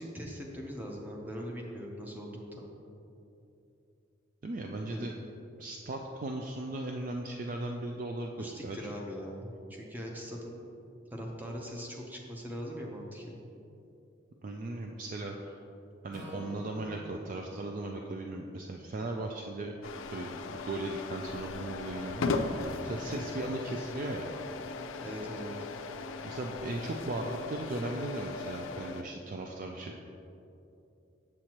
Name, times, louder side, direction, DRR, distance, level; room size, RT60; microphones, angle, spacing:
voice 1, 0.0-2.7 4.9-5.0 8.4-10.6 11.1-13.4 25.0-25.5, equal, 10° right, -1 dB, 0.8 m, -41 dB
voice 2, 4.4-5.1 5.6-8.9 14.4-15.6 16.0-19.7 20.1-24.3 26.2-30.0, right 2 dB, 45° right, 2 dB, 0.4 m, -37 dB
Acoustic guitar / Strum, 16.1-20.4, left 2 dB, 65° right, 1.5 m, -50 dB
sound 1, 19.8-29.0, left 4 dB, 85° left, 0.4 m, -38 dB
8.0 x 7.3 x 3.0 m, 2.8 s
head